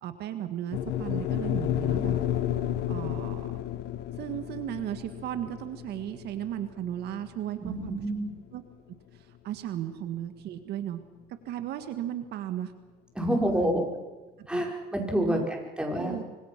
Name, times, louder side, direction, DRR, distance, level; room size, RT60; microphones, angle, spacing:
voice 1, 0.0-2.2 2.9-3.5 4.2-8.0 8.5-8.6 9.1-11.0 11.5-12.7 14.4-14.7 15.3-15.5 15.8-16.2, right 11 dB, 75° right, 9 dB, 1.8 m, -35 dB
sound 1, 0.7-9.0, left 12 dB, 85° left, 1.5 m, -32 dB
voice 2, 7.6-8.3 13.2-13.8 14.5-16.2, equal, 5° right, 1 dB, 5.2 m, -28 dB
25.5 x 25.0 x 6.0 m, 1.2 s
cardioid pair, 110°, 17 cm